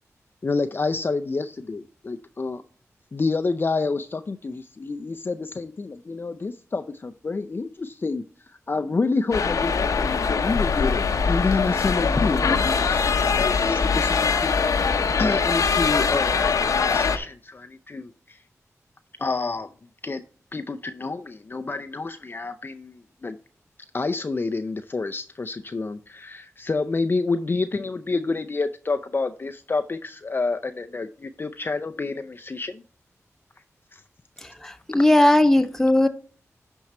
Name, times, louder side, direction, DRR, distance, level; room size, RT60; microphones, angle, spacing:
voice 1, 0.4-2.6 3.1-10.9 11.3-14.6 15.2-18.4 19.2-19.7 20.0-20.2 20.5-23.4 23.9-32.8 33.9-34.0, left 3 dB, 40° left, 9 dB, 0.5 m, -28 dB
sound 1, 9.3-17.2, left 5 dB, 90° left, 0.8 m, -22 dB
voice 2, 34.4-36.1, left 1 dB, 5° left, 8 dB, 0.9 m, -18 dB
10.5 x 4.5 x 4.2 m, 0.40 s
wide cardioid pair, 95°, 5 cm